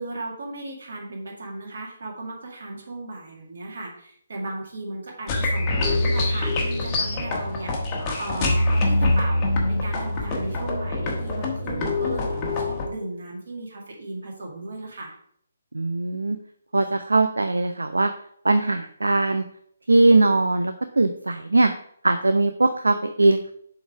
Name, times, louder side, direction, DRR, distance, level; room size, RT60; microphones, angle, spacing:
voice 1, 0.0-15.1, right 2 dB, 55° right, -1 dB, 2.2 m, -36 dB
sound 1, 5.3-12.9, left 2 dB, 20° left, 1.2 m, -24 dB
voice 2, 15.7-16.4 16.7-18.1 18.4-19.4 19.9-21.7 22.0-23.5, right 2 dB, 70° right, 9 dB, 0.4 m, -20 dB
7.0 x 3.9 x 4.7 m, 0.66 s
figure-of-eight pair, 140°, 0 cm